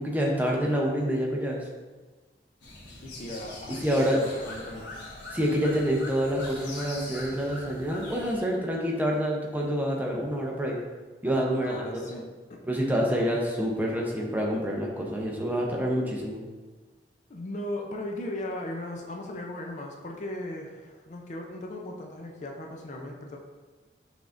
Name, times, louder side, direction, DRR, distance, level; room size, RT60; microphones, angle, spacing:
voice 1, 0.0-1.6 3.8-4.2 5.3-10.8 11.2-12.1 12.7-16.4, equal, 10° right, -1 dB, 0.6 m, -27 dB
sound 1, 2.6-8.4, left 2 dB, 85° left, 1.1 m, -42 dB
voice 2, 3.0-4.9 11.5-12.6 12.9-13.3 17.3-23.4, left 1 dB, 45° left, 1 dB, 0.5 m, -37 dB
6.0 x 3.4 x 2.5 m, 1.3 s
head